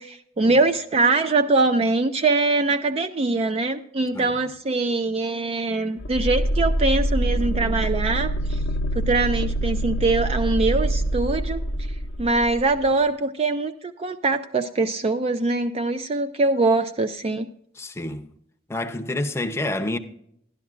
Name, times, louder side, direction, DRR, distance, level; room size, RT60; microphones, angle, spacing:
voice 1, 0.0-8.6 8.9-11.6 12.2-17.5, right 3 dB, 35° right, 0.4 m, -23 dB
sound 1, 6.0-12.7, right 1 dB, 85° left, 0.6 m, -25 dB
voice 2, 17.8-18.3 18.7-20.0, left 1 dB, 15° left, 0.6 m, -28 dB
12.0 x 11.5 x 2.5 m
head